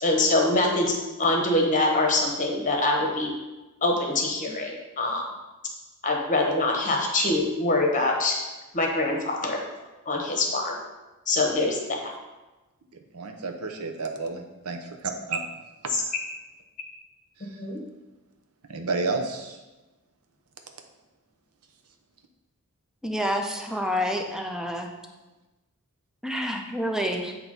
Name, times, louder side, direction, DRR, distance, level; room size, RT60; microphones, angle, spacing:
voice 1, 0.0-0.9 1.2-3.3 3.8-5.2 6.0-8.4 8.7-9.6 10.1-10.8 11.3-12.0 15.9-16.0 17.6-17.8, left 2 dB, 35° left, 1 dB, 1.1 m, -24 dB
voice 2, 13.1-15.4 18.7-19.6, right 3 dB, 85° right, 5 dB, 0.8 m, -31 dB
voice 3, 23.0-24.9 26.2-27.3, equal, 5° right, 2 dB, 0.6 m, -28 dB
8.0 x 3.0 x 5.3 m, 1.1 s
head